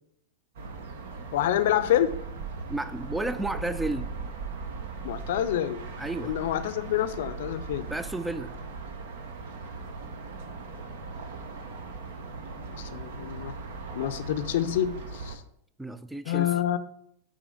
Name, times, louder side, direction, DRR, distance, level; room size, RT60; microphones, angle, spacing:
sound 1, 0.6-15.4, right 4 dB, 60° right, 0.9 m, -39 dB
voice 1, 1.3-2.1 5.0-5.9 6.2-7.9 12.8-13.5 13.9-15.4 16.3-16.8, left 11 dB, 55° left, 0.6 m, -27 dB
voice 2, 2.7-4.1 6.0-6.4 7.9-8.5 15.8-16.5, right 2 dB, 5° right, 0.3 m, -32 dB
9.1 x 3.8 x 5.1 m
figure-of-eight pair, 90°, 0 cm